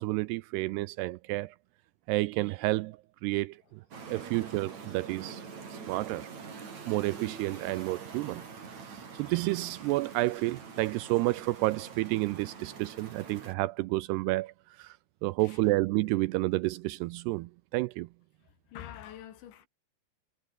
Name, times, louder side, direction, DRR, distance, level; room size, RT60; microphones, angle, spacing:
voice 1, 0.0-1.6 2.1-3.0 3.2-3.8 4.1-5.4 5.7-6.3 6.9-8.5 8.8-15.0 15.2-18.1, right 20 dB, 85° right, 2.4 m, -30 dB
sound 1, 3.9-13.5, right 5 dB, 40° right, 5.0 m, -45 dB
voice 2, 18.4-19.7, left 11 dB, 90° left, 4.7 m, -47 dB
omnidirectional pair, 5.1 m